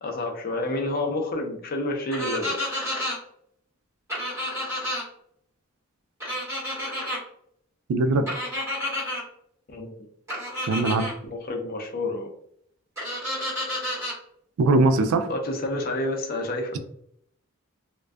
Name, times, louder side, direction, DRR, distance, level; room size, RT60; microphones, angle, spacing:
voice 1, 0.0-2.6 8.1-8.3 9.7-9.9 11.2-12.3 15.3-16.8, left 2 dB, 45° left, 3 dB, 0.5 m, -29 dB
sound 1, 2.1-3.2 4.1-5.0 6.2-7.2 8.3-9.2 10.3-11.1 13.0-14.2, left 1 dB, 15° right, 1.4 m, -30 dB
voice 2, 7.9-8.2 10.7-11.1 14.6-15.3, right 2 dB, 90° right, 9 dB, 0.3 m, -20 dB
2.5 x 2.2 x 2.2 m, 0.70 s
head